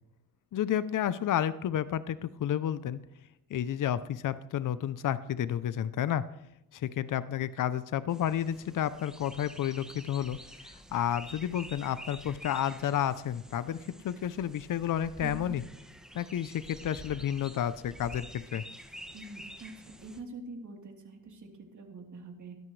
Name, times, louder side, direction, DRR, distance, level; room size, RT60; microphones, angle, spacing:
voice 1, 0.5-3.0 3.5-6.3 6.7-10.4 10.6-13.8 14.0-15.6 16.1-18.6, left 10 dB, 65° left, 15 dB, 0.7 m, -31 dB
sound 1, 8.1-20.2, equal, ahead, 1.9 m, -48 dB
voice 2, 15.2-15.6 19.1-19.7 20.0-22.5, right 3 dB, 55° right, 1 dB, 3.6 m, -44 dB
17.0 x 13.0 x 3.3 m, 0.84 s
cardioid pair, 75°, 35 cm